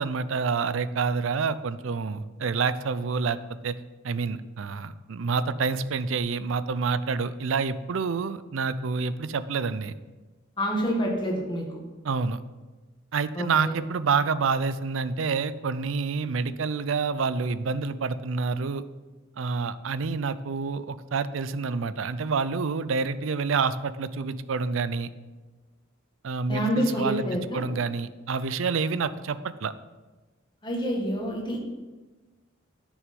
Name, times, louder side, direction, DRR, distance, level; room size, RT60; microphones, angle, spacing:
voice 1, 0.0-3.4 3.6-3.7 4.0-9.9 12.0-12.4 13.1-18.8 19.4-25.1 26.2-27.2 27.5-29.7, right 5 dB, 70° right, 15 dB, 0.5 m, -28 dB
voice 2, 10.6-11.7 13.4-13.8 26.5-27.6 30.6-31.6, equal, 25° left, -1 dB, 1.7 m, -27 dB
9.6 x 6.3 x 5.3 m, 1.2 s
head